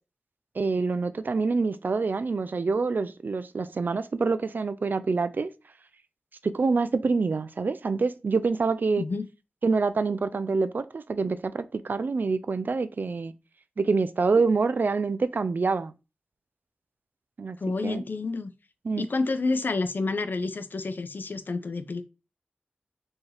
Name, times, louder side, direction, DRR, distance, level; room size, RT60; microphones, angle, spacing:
voice 1, 0.6-5.5 6.4-9.0 9.6-13.3 13.8-15.9 17.4-17.6 17.8-18.0 18.8-19.1, right 4 dB, 60° right, 0.3 m, -26 dB
voice 2, 17.6-18.5 19.0-22.0, left 3 dB, 60° left, 0.5 m, -29 dB
4.5 x 2.8 x 3.2 m
wide cardioid pair, 65°, 4 cm